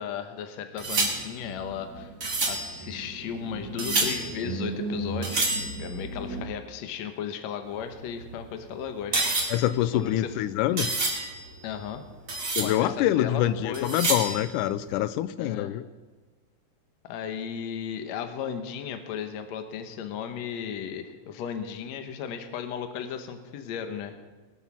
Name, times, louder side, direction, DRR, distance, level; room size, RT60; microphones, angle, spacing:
voice 1, 0.0-2.1 2.4-5.5 5.8-9.2 9.8-10.3 11.6-12.0 12.6-13.9 15.4-15.8 17.0-24.2, left 8 dB, 65° left, 7 dB, 2.1 m, -35 dB
sound 1, 0.8-6.4 7.7-11.9 12.1-12.9 13.7-14.7, right 2 dB, 30° right, 2.4 m, -30 dB
voice 2, 9.5-11.0 12.6-15.8, left 13 dB, 90° left, 15 dB, 2.2 m, -26 dB
21.5 x 8.0 x 6.1 m, 1.3 s
omnidirectional pair, 3.6 m